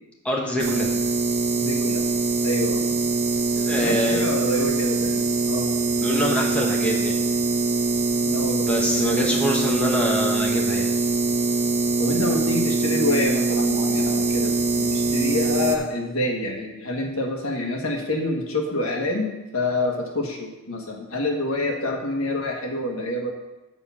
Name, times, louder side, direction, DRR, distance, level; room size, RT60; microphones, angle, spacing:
voice 1, 0.2-0.9 3.6-4.3 6.0-7.2 8.5-10.9, left 1 dB, 5° left, -3 dB, 1.3 m, -25 dB
sound 1, 0.6-15.8, right 3 dB, 35° right, 1.0 m, -23 dB
voice 2, 1.6-2.0 2.4-2.8 3.8-5.7 8.2-9.3 12.0-23.3, left 1 dB, 80° left, 1 dB, 1.6 m, -27 dB
7.2 x 7.0 x 5.7 m, 1.0 s
head